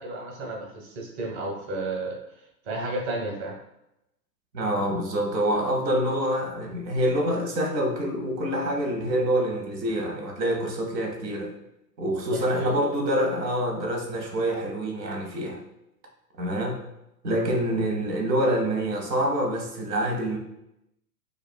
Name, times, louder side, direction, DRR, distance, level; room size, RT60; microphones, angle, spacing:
voice 1, 0.0-2.2 2.6-3.6 12.3-12.7 17.3-17.5, right 2 dB, 30° right, -1 dB, 0.9 m, -32 dB
voice 2, 4.5-11.5 12.0-15.6 16.4-16.8 17.2-20.4, equal, 85° right, 1 dB, 1.0 m, -26 dB
4.9 x 2.4 x 2.2 m, 0.86 s
hypercardioid pair, 120°, 49 cm